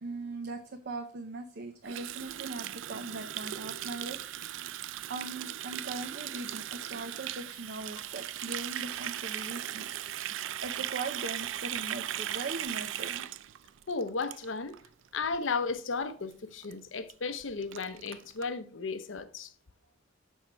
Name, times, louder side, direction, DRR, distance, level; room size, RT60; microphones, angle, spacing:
voice 1, 0.0-4.3 5.1-9.9 10.6-13.3, right 3 dB, 60° right, 0.7 m, -40 dB
Water tap faucet, 1.8-14.9 15.1-15.4 15.7-16.0 16.3-16.4 16.6-16.7 17.1-17.2 17.4-18.5, right 12 dB, 90° right, 0.4 m, -38 dB
voice 2, 13.9-14.7 15.1-19.5, left 4 dB, 85° left, 0.8 m, -34 dB
6.3 x 6.0 x 4.4 m
head